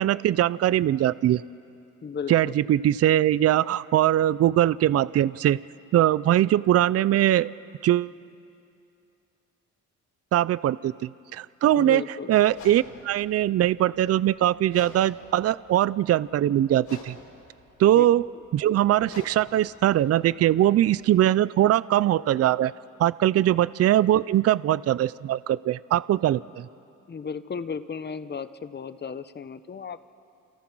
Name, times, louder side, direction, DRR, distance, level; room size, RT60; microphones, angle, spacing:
voice 1, 0.0-1.4 2.3-5.6 5.9-7.5 7.8-8.1 10.3-12.0 12.3-17.2 17.8-18.2 18.5-22.7 23.0-26.7, right 12 dB, 55° right, 19 dB, 0.5 m, -21 dB
voice 2, 2.0-2.6 11.7-12.3 17.9-18.1 18.3-18.4 23.5-23.7 27.1-30.0, left 6 dB, 35° left, 12 dB, 1.1 m, -35 dB
sound 1, 12.5-21.2, left 4 dB, 65° left, 6.5 m, -49 dB
29.5 x 28.0 x 6.2 m, 2.6 s
cardioid pair, 90°, 30 cm